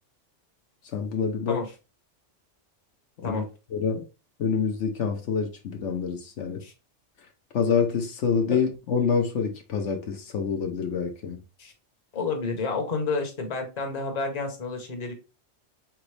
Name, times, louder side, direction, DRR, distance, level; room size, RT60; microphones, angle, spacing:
voice 1, 0.9-1.6 3.2-3.4 3.7-4.1 4.4-6.6 7.5-11.4, left 6 dB, 80° left, 1.1 m, -26 dB
voice 2, 12.1-15.1, left 4 dB, 35° left, 1.0 m, -30 dB
3.9 x 3.6 x 3.3 m
omnidirectional pair, 1.2 m